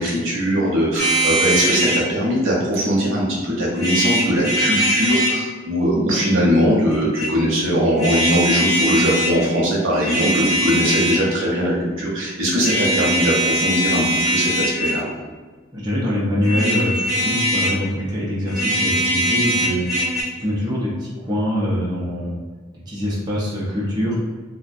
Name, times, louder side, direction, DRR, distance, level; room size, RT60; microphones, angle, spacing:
voice 1, 0.0-15.1, equal, 85° right, -4 dB, 0.7 m, -20 dB
sound 1, 1.0-2.0 3.7-5.4 6.9-7.3 8.0-9.3 9.9-11.3 12.6-15.1 16.4-17.8 18.5-20.2, equal, ahead, 1.2 m, -21 dB
voice 2, 15.7-22.4 22.9-24.2, equal, 20° right, -6 dB, 0.5 m, -24 dB
2.3 x 2.1 x 2.5 m, 1.4 s
head